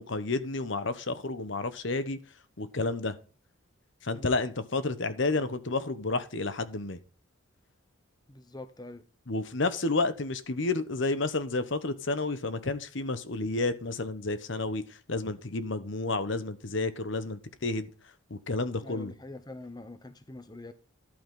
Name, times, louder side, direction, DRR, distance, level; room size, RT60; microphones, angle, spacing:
voice 1, 0.0-2.2 2.6-3.1 4.0-7.0 9.3-14.8 15.1-17.9 18.3-19.1, left 3 dB, 60° left, 1.1 m, -30 dB
voice 2, 8.3-9.0 18.8-20.7, left 2 dB, 20° left, 0.9 m, -44 dB
12.0 x 8.7 x 3.8 m
head